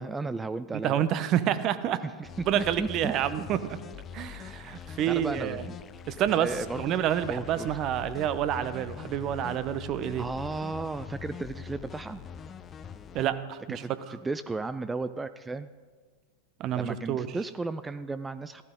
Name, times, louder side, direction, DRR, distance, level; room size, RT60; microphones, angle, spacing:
voice 1, 0.0-1.1 2.0-2.3 2.6-3.1 4.9-5.8 6.4-6.8 7.3-7.8 10.2-12.2 13.7-15.7 16.7-18.6, right 3 dB, 15° right, 12 dB, 0.4 m, -34 dB
voice 2, 0.8-2.0 2.5-3.8 4.1-5.6 6.1-6.5 6.8-10.2 13.1-13.8 16.6-17.3, right 10 dB, 40° right, 13 dB, 0.8 m, -28 dB
sound 1, 2.2-13.3, left 7 dB, 30° left, 0.6 m, -43 dB
14.5 x 13.5 x 3.8 m, 1.4 s
figure-of-eight pair, 90°, 0 cm